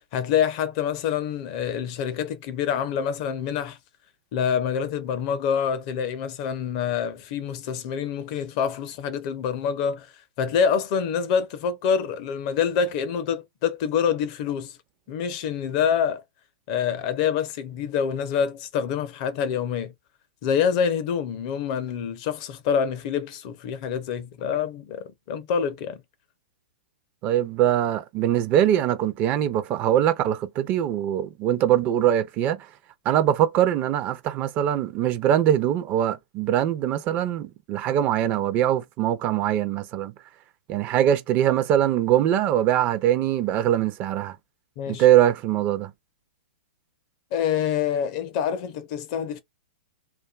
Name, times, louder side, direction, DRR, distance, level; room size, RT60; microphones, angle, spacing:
voice 1, 0.1-3.8 4.3-10.1 10.4-14.8 15.1-16.2 16.7-19.9 20.4-26.0 44.8-45.0 47.3-49.4, left 7 dB, 40° left, 0.5 m, -26 dB
voice 2, 27.2-32.6 33.1-40.1 40.7-44.3 44.9-45.9, right 11 dB, 30° right, 0.4 m, -22 dB
2.5 x 2.3 x 2.3 m
hypercardioid pair, 140°, 6 cm